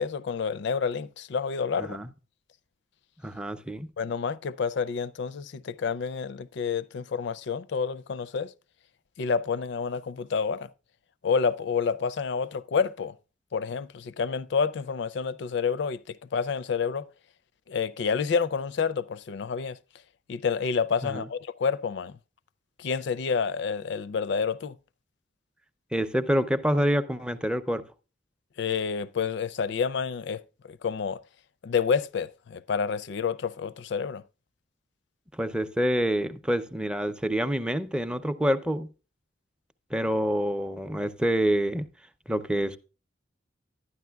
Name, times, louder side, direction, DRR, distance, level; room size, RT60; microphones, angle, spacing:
voice 1, 0.0-2.0 4.0-8.5 9.2-10.7 11.2-13.1 13.5-17.0 17.7-19.8 20.3-22.2 22.8-24.8 28.6-31.2 31.6-34.2, left 5 dB, 65° left, 0.4 m, -29 dB
voice 2, 1.8-2.1 3.2-3.9 21.0-21.3 25.9-27.8 35.4-38.9 39.9-41.8 42.3-42.8, equal, 5° right, 0.5 m, -27 dB
12.0 x 9.8 x 2.3 m
head